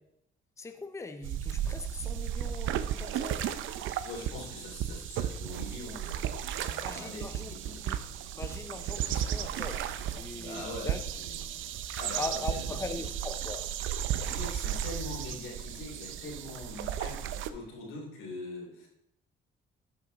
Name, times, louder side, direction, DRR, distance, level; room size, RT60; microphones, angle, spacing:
voice 1, 0.6-3.5 6.8-7.5 7.8-8.0 8.4-11.0 12.2-13.8, left 3 dB, 15° left, 8 dB, 0.8 m, -40 dB
sound 1, 1.2-17.5, right 10 dB, 80° right, 0.6 m, -34 dB
voice 2, 4.0-7.8 10.4-11.4 12.0-13.0 14.1-18.9, left 2 dB, 90° left, -1 dB, 3.2 m, -43 dB
13.0 x 5.9 x 4.0 m, 0.83 s
cardioid pair, 90°, 20 cm